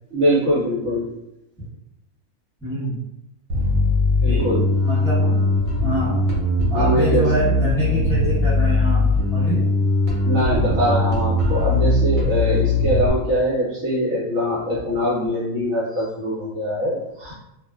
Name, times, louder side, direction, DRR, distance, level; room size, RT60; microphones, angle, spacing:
voice 1, 0.1-1.1 4.2-4.7 5.2-5.3 6.7-7.3 10.2-17.3, equal, 60° right, -6 dB, 0.9 m, -22 dB
voice 2, 2.6-3.0 4.3-4.5 4.8-5.2 5.8-6.2 6.7-9.6, equal, 5° left, -10 dB, 0.7 m, -26 dB
Bass guitar, 3.5-13.1, left 2 dB, 85° right, 1.1 m, -20 dB
2.5 x 2.2 x 2.2 m, 0.86 s
omnidirectional pair, 1.4 m